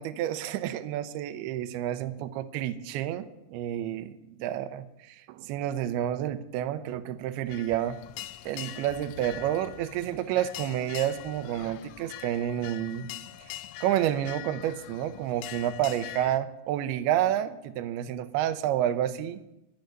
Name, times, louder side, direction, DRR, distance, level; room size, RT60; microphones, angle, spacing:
voice 1, 0.0-8.0 8.5-13.1 13.8-19.4, right 11 dB, 80° right, 11 dB, 2.4 m, -30 dB
sound 1, 7.5-16.4, left 14 dB, 90° left, 2.9 m, -43 dB
10.5 x 10.5 x 6.6 m, 0.90 s
omnidirectional pair, 5.0 m